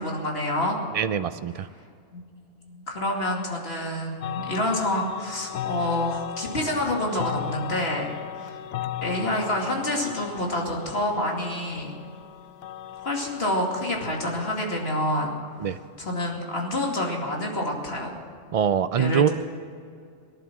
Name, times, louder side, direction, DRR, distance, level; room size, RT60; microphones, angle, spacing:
voice 1, 0.0-0.8 2.1-2.2 2.7-8.1 8.4-8.6 9.0-11.9 13.0-15.3 15.6-18.1 19.0-19.3, left 1 dB, 60° left, 0 dB, 2.8 m, -28 dB
voice 2, 0.9-1.7 15.6-15.8 18.5-19.3, right 8 dB, 75° right, 13 dB, 0.3 m, -23 dB
sound 1, 4.2-14.9, left 11 dB, 85° left, 1.0 m, -37 dB
18.0 x 11.5 x 6.2 m, 2.3 s
omnidirectional pair, 1.2 m